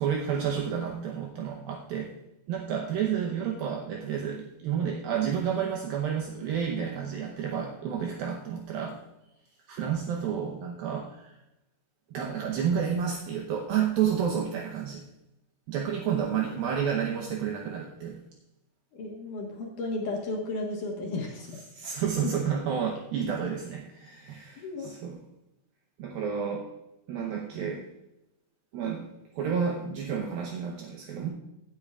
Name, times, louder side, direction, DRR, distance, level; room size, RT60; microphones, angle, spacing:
voice 1, 0.0-2.1 2.5-9.0 9.7-11.4 12.1-15.0 15.7-18.2 21.7-25.2 26.0-26.7 27.1-27.8 28.7-29.1 29.4-31.3, right 7 dB, 75° right, 0 dB, 2.5 m, -30 dB
voice 2, 19.0-21.6 22.2-22.3 24.6-24.9, left 2 dB, 60° left, -1 dB, 2.6 m, -33 dB
17.0 x 8.7 x 2.4 m, 0.92 s
omnidirectional pair, 4.7 m